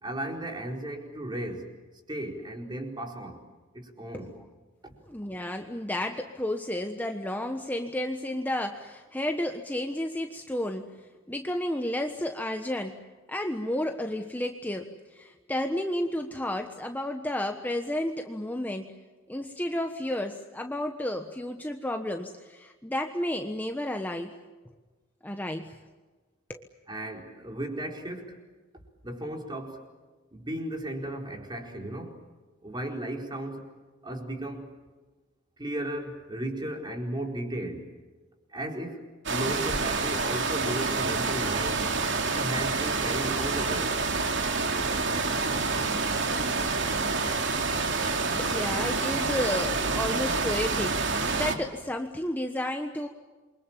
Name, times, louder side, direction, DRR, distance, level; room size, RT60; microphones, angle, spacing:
voice 1, 0.0-1.7 2.1-3.4 3.7-4.3 4.8-5.0 26.9-28.4 29.0-29.8 30.3-32.2 32.6-33.7 34.0-34.7 35.6-37.9 38.5-41.8 42.3-44.0, right 1 dB, 25° right, 2 dB, 4.6 m, -35 dB
voice 2, 5.1-13.0 13.3-18.9 19.3-24.3 24.6-24.7 25.2-25.7 26.5-26.7 48.4-53.1, left 1 dB, 10° left, 4 dB, 1.3 m, -32 dB
sound 1, 39.3-51.6, right 4 dB, 65° right, 2.8 m, -28 dB
28.5 x 24.5 x 7.5 m, 1.3 s
head